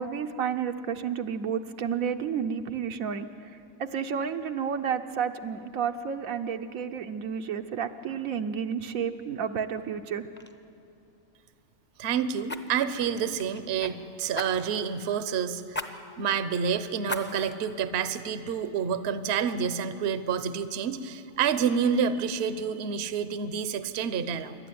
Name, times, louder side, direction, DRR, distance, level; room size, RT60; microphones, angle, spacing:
voice 1, 0.0-10.2, right 7 dB, 75° right, 6 dB, 1.2 m, -31 dB
Fire, 9.8-10.0 10.3-10.5 12.5-13.9 14.3-14.9 15.7-15.9 16.3-16.4 17.0-17.7 18.2-18.3, left 1 dB, 10° left, 0.8 m, -37 dB
voice 2, 12.0-15.8 16.2-24.6, right 7 dB, 55° right, 11 dB, 1.0 m, -28 dB
26.5 x 12.0 x 9.3 m, 2.6 s
omnidirectional pair, 1.5 m